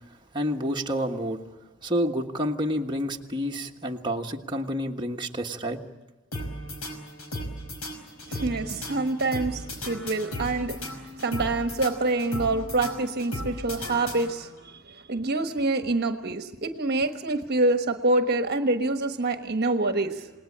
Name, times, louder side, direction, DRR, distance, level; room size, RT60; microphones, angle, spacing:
voice 1, 0.3-1.4 1.8-5.8, equal, 20° right, 0 dB, 1.5 m, -29 dB
sound 1, 6.3-14.6, left 1 dB, 80° left, 5.5 m, -36 dB
voice 2, 8.3-20.3, right 2 dB, 50° right, 7 dB, 1.3 m, -26 dB
28.5 x 19.5 x 8.7 m, 1.2 s
head